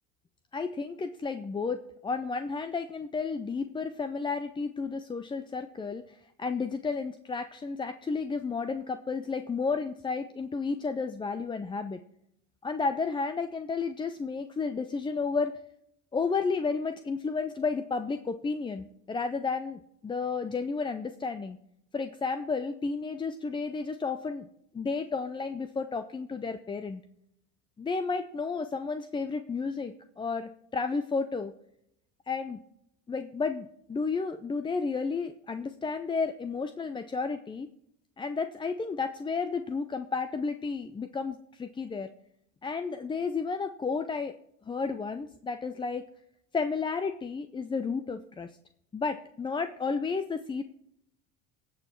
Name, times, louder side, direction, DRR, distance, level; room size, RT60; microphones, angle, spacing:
voice 1, 0.5-12.0 12.6-15.5 16.1-21.6 21.9-24.5 24.7-27.0 27.8-31.5 32.3-32.6 33.1-37.7 38.2-42.1 42.6-44.4 44.6-46.0 46.5-48.6 48.9-50.6, left 4 dB, 10° left, 10 dB, 0.3 m, -32 dB
17.5 x 6.1 x 4.4 m, 0.75 s
hypercardioid pair, 80°, 46 cm